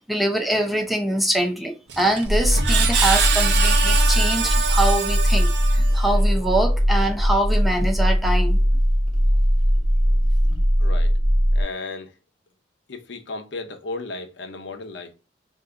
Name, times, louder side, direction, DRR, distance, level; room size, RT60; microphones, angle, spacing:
voice 1, 0.0-8.6, right 1 dB, ahead, 0.5 m, -24 dB
Screech, 1.9-6.2, right 6 dB, 65° right, 0.7 m, -25 dB
sound 1, 2.2-11.6, equal, 40° right, 1.1 m, -19 dB
voice 2, 10.8-11.2 11.5-12.1 12.9-15.1, left 3 dB, 75° left, 0.8 m, -35 dB
3.4 x 2.7 x 3.7 m
head